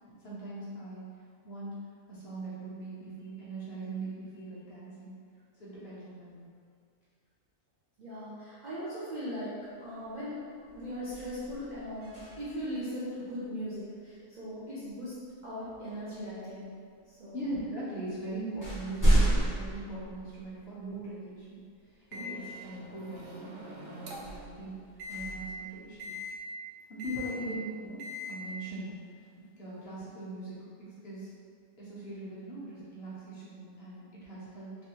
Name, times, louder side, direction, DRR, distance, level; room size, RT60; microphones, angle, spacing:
voice 1, 0.2-1.1 1.4-1.7 2.1-5.2 5.6-6.5 17.3-21.6 22.1-24.8 25.1-26.1 26.9-28.9 29.6-31.3 31.8-34.8, right 2 dB, 50° left, -9 dB, 1.0 m, -41 dB
voice 2, 8.0-9.5 9.8-10.4 10.7-15.1 15.4-16.8 17.1-17.4 22.1-22.4 24.1-24.6 27.1-27.3, equal, 85° right, -10 dB, 0.4 m, -39 dB
sound 1, 10.0-10.3 10.7-12.7 14.9-15.1 15.9-16.6 17.5-17.6 18.0-20.9 21.4-21.5 24.1-26.3, right 1 dB, 20° left, 0.6 m, -31 dB
Microwave oven, 22.1-24.4 25.0-25.3 26.0-26.3 27.0-27.4 28.0-28.3, left 3 dB, 70° right, 0.9 m, -42 dB
3.2 x 2.6 x 3.0 m, 2.2 s
omnidirectional pair, 1.6 m